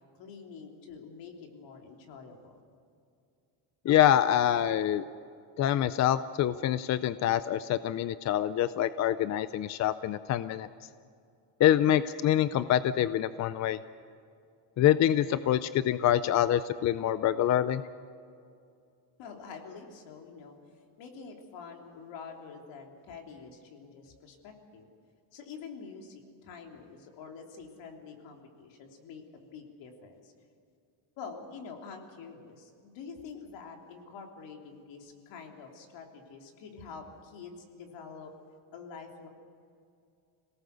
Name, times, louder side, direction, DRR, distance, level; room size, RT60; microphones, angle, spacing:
voice 1, 0.2-2.6 19.2-20.6 21.0-24.9 25.3-30.3 31.2-38.3 38.7-39.3, left 5 dB, 65° left, 2 dB, 3.3 m, -46 dB
voice 2, 3.9-5.0 5.6-10.7 11.6-13.8 14.8-17.8, left 11 dB, 40° left, 14 dB, 0.4 m, -26 dB
26.5 x 18.0 x 6.8 m, 2.4 s
cardioid pair, 155°, 47 cm